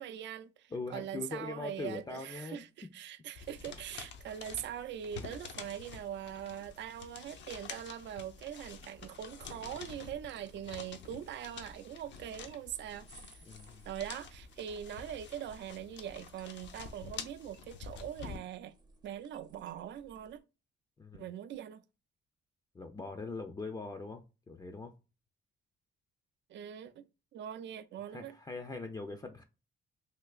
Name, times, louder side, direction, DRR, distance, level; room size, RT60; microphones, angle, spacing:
voice 1, 0.0-13.4 13.9-18.7 19.0-20.4 21.2-21.8 26.5-27.1 27.3-28.4, right 10 dB, 65° right, 0.4 m, -42 dB
voice 2, 0.7-2.6 13.4-13.9 21.0-21.3 22.7-24.9 28.1-29.4, left 3 dB, 20° left, 0.5 m, -41 dB
sound 1, 3.4-18.4, left 6 dB, 65° left, 0.7 m, -48 dB
sound 2, 8.3-20.4, right 2 dB, 20° right, 0.6 m, -60 dB
3.4 x 2.7 x 2.4 m
cardioid pair, 90°, 20 cm